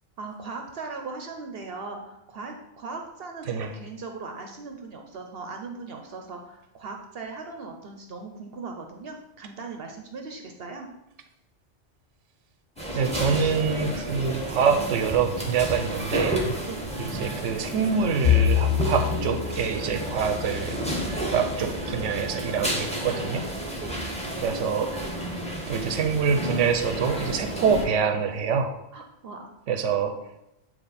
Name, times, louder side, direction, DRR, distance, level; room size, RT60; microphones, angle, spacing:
voice 1, 0.2-10.9 16.7-16.8 23.8-24.0 28.9-29.5, right 4 dB, 60° right, 3 dB, 0.8 m, -39 dB
sound 1, 12.8-27.8, right 1 dB, 5° left, 1.1 m, -31 dB
voice 2, 12.9-16.4 17.0-20.8 21.3-23.5 24.4-24.9 25.7-28.7 29.7-30.2, right 6 dB, 85° right, 7 dB, 1.0 m, -25 dB
Bowed string instrument, 18.2-22.6, left 10 dB, 60° left, 0.4 m, -27 dB
8.7 x 3.0 x 4.1 m, 0.85 s
omnidirectional pair, 1.2 m